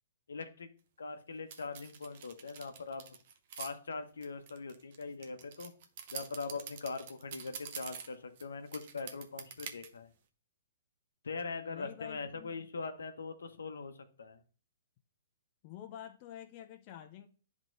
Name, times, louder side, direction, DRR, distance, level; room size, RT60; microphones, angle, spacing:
voice 1, 0.3-0.7 1.0-3.0 3.6-5.7 6.1-10.1 11.2-14.4, left 4 dB, 80° left, 0.8 m, -41 dB
sound 1, 1.5-3.7 4.2-8.4 8.7-9.9, right 8 dB, 55° right, 0.7 m, -46 dB
voice 2, 11.7-12.7 15.6-17.3, left 11 dB, 40° left, 0.5 m, -48 dB
10.5 x 3.6 x 2.5 m
hypercardioid pair, 125°, 0 cm